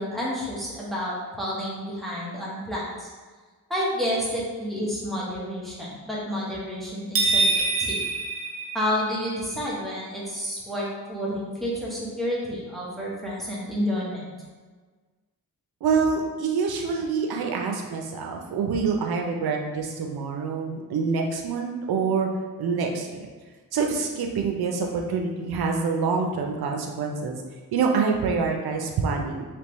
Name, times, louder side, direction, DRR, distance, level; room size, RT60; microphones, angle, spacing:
voice 1, 0.0-3.1 3.7-8.0 8.7-14.2, equal, ahead, -7 dB, 0.9 m, -30 dB
sound 1, 7.1-9.3, right 3 dB, 40° right, 0.7 m, -25 dB
voice 2, 15.8-22.3 22.6-23.3 23.7-27.4 27.7-29.5, right 5 dB, 85° right, 2 dB, 0.6 m, -26 dB
3.5 x 2.9 x 3.0 m, 1.4 s
wide cardioid pair, 130°, 36 cm